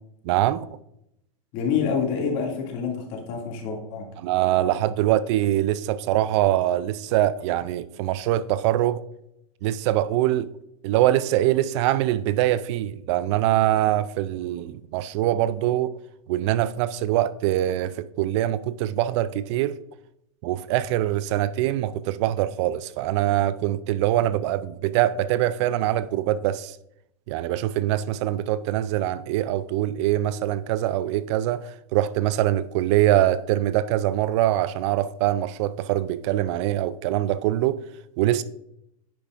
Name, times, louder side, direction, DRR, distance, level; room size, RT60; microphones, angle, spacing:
voice 1, 0.2-0.7 4.2-9.0 9.6-10.5 10.8-15.9 16.3-19.8 20.4-26.8 27.3-37.8 38.2-38.4, right 13 dB, 50° right, 0.4 m, -23 dB
voice 2, 1.5-4.0, left 6 dB, 50° left, 2.5 m, -27 dB
9.9 x 6.8 x 2.6 m
hypercardioid pair, 120°, 18 cm